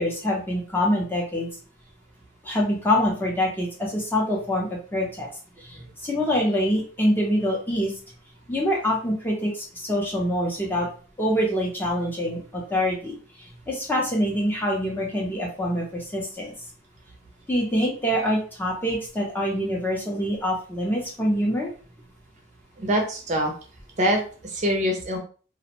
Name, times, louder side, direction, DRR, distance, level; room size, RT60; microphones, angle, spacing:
voice 1, 0.0-1.5 2.4-5.3 5.6-7.9 8.5-10.9 11.2-13.2 13.7-16.5 17.5-21.7, equal, 10° left, -2 dB, 0.5 m, -25 dB
voice 2, 22.8-23.5 24.0-25.2, equal, 35° right, 1 dB, 0.5 m, -24 dB
2.4 x 2.0 x 2.8 m, 0.39 s
head